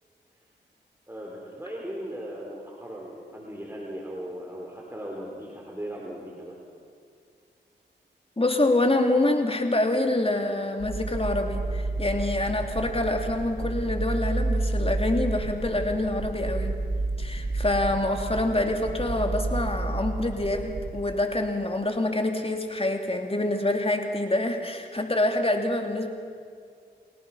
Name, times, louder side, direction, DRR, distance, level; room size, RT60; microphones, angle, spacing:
voice 1, 1.1-6.6, equal, 10° right, -3 dB, 4.5 m, -38 dB
voice 2, 8.4-16.8 17.2-26.1, left 2 dB, 30° left, 4 dB, 3.2 m, -26 dB
sound 1, 10.8-20.9, right 2 dB, 80° right, 2.9 m, -30 dB
29.0 x 18.0 x 5.8 m, 2.2 s
cardioid pair, 40°, 20 cm